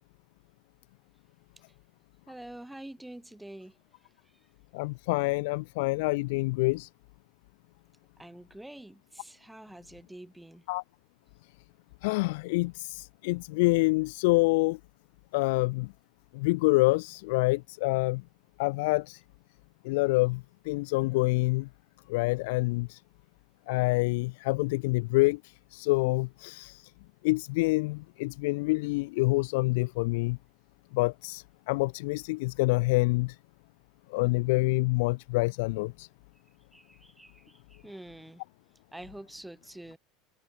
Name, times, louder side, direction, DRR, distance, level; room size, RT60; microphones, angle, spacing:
voice 1, 2.3-3.8 8.2-10.6 36.7-38.4 38.9-40.0, right 1 dB, 5° right, 6.4 m, -46 dB
voice 2, 4.7-6.9 10.7-10.8 12.0-14.8 15.3-15.9 16.3-18.2 18.6-19.2 19.8-21.7 22.1-23.0 23.7-26.9 27.2-30.4 30.9-33.4 34.1-36.1, left 24 dB, 75° left, 1.0 m, -27 dB
open air
supercardioid pair, 145°, 0 cm